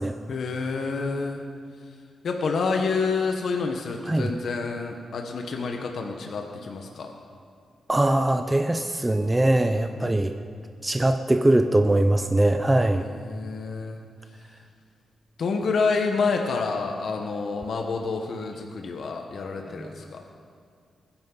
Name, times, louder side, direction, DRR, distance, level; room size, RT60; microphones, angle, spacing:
voice 1, 0.3-1.4 2.2-7.1 9.8-10.2 10.5-10.6 13.0-14.0 15.4-20.2, left 4 dB, 65° left, 3 dB, 1.2 m, -28 dB
voice 2, 7.9-10.3 10.8-13.0 19.7-20.0, right 1 dB, 15° right, 7 dB, 0.5 m, -22 dB
20.0 x 10.5 x 4.0 m, 2.3 s
cardioid pair, 110°, 0 cm